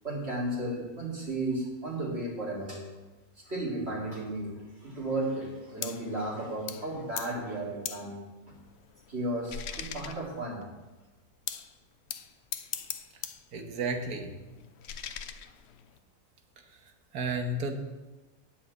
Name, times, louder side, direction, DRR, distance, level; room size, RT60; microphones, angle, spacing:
voice 1, 0.0-2.8 3.4-8.5 9.1-10.6, right 1 dB, 45° right, -5 dB, 2.9 m, -34 dB
sound 1, 5.8-6.1 6.7-6.9 7.2-7.4 7.8-8.1 8.5-10.6 11.5-11.7 12.1-13.4 13.7-16.0, left 8 dB, 60° left, 0.7 m, -40 dB
voice 2, 13.5-14.3 17.1-17.7, right 2 dB, 90° right, 5 dB, 1.7 m, -32 dB
9.4 x 5.7 x 8.3 m, 1.2 s
omnidirectional pair, 1.6 m